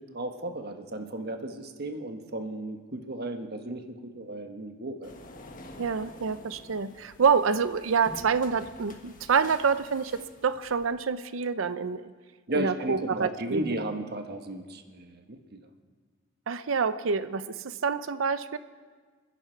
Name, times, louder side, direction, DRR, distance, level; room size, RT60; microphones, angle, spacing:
voice 1, 0.0-5.1 12.5-15.6, right 1 dB, 55° right, 6 dB, 1.3 m, -35 dB
sound 1, 5.0-10.9, left 1 dB, 45° left, 1.5 m, -48 dB
voice 2, 5.8-10.1 10.4-12.1 12.5-13.6 16.5-18.6, right 5 dB, 80° right, 12 dB, 0.6 m, -27 dB
27.5 x 10.5 x 4.5 m, 1.5 s
head